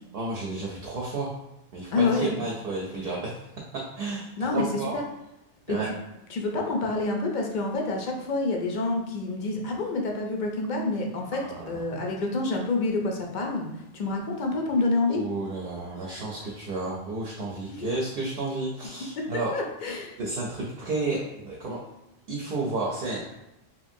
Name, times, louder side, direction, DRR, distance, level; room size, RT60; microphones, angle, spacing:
voice 1, 0.1-1.3 1.7-3.4 3.7-4.9 5.7-5.9 11.4-11.8 15.1-19.6 20.2-21.8 22.3-23.3, right 3 dB, 65° right, -4 dB, 0.7 m, -32 dB
voice 2, 1.9-2.3 4.4-5.0 5.7-6.0 6.3-13.7 13.9-15.2 17.7-17.9 19.2-20.2, left 3 dB, 55° left, 1 dB, 0.6 m, -28 dB
2.9 x 2.6 x 2.5 m, 0.91 s
omnidirectional pair, 1.1 m